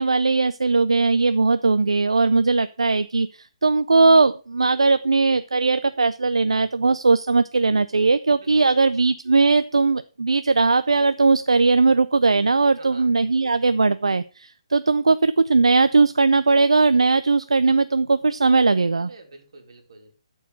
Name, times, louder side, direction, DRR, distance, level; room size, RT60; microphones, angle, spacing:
voice 1, 0.0-19.1, right 3 dB, 85° right, 13 dB, 0.4 m, -19 dB
voice 2, 8.3-8.9 12.8-13.1 18.9-20.1, right 3 dB, 65° right, 4 dB, 2.5 m, -47 dB
12.5 x 4.6 x 5.2 m, 0.34 s
hypercardioid pair, 145°, 3 cm